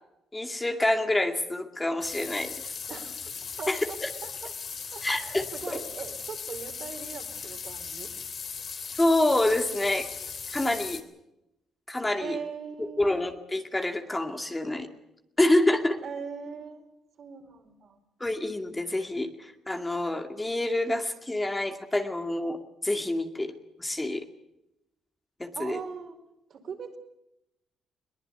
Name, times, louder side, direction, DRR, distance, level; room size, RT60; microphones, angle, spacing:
voice 1, 0.3-2.5 3.7-4.1 5.0-5.8 9.0-10.1 10.5-11.0 11.9-12.4 12.8-14.9 15.4-16.0 18.2-23.5 23.8-24.3 25.4-25.8, left 1 dB, 15° left, 5 dB, 2.3 m, -27 dB
sound 1, 2.0-11.0, left 6 dB, 50° left, 3.2 m, -38 dB
voice 2, 2.9-3.3 3.6-3.7 4.2-4.5 4.9-8.1 12.2-13.2 16.0-16.8 17.2-18.0 25.5-26.2 26.5-27.0, right 6 dB, 55° right, 5 dB, 4.6 m, -40 dB
22.5 x 20.0 x 8.1 m, 0.86 s
cardioid pair, 95°, 0 cm